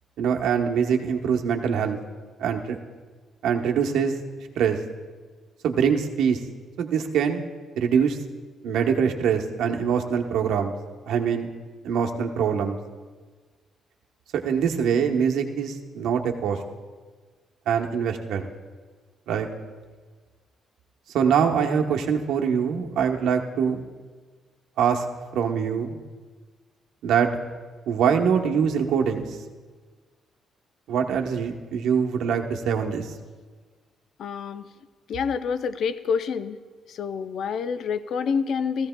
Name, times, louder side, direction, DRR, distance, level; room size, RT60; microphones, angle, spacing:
voice 1, 0.2-2.0 2.4-2.8 3.4-4.1 4.6-4.8 5.6-6.4 6.8-7.4 7.8-8.2 8.6-10.7 11.1-11.5 11.8-12.8 14.3-16.6 17.7-18.5 19.3-19.5 21.1-23.9 24.8-25.1 25.3-26.0 27.0-27.3 27.9-29.4 30.9-33.1, right 7 dB, 80° right, 3 dB, 0.9 m, -23 dB
voice 2, 34.2-34.7 35.1-36.6 36.9-38.9, left 6 dB, 65° left, 12 dB, 0.5 m, -27 dB
16.0 x 15.0 x 2.2 m, 1.4 s
cardioid pair, 90°, 0 cm